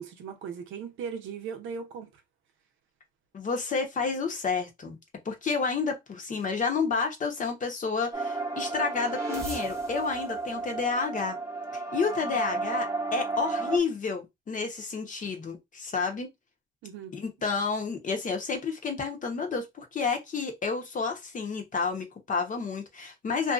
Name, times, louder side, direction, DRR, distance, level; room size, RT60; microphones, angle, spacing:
voice 1, 0.0-2.1 16.8-17.1, right 6 dB, 80° right, 0.6 m, -38 dB
voice 2, 3.3-5.0 5.2-11.4 11.9-16.3 17.1-23.5, left 5 dB, 40° left, 0.9 m, -30 dB
sound 1, 8.1-13.8, right 3 dB, 15° right, 0.9 m, -32 dB
2.6 x 2.4 x 2.4 m
cardioid pair, 90°, 20 cm